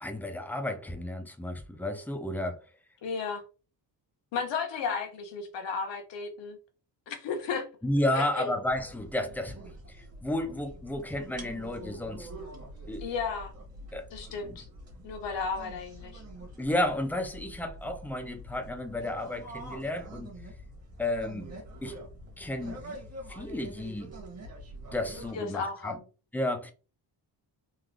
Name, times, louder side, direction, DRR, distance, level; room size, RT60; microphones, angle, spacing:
voice 1, 0.0-2.6 7.8-9.6 9.9-10.0 10.2-12.3 12.9-13.1 13.9-14.1 16.6-20.3 21.0-21.5 21.8-21.9 22.4-22.8 23.3-24.1 24.9-26.0 26.3-26.7, left 1 dB, 5° left, 0.5 m, -32 dB
voice 2, 3.0-3.4 4.3-6.6 7.1-7.7 8.1-8.5 13.0-13.5 14.1-14.7 15.0-16.2 25.3-26.0, left 5 dB, 85° left, 1.1 m, -34 dB
sound 1, 8.7-25.3, right 1 dB, 35° right, 1.4 m, -45 dB
3.8 x 2.5 x 3.2 m
cardioid pair, 135°, 42 cm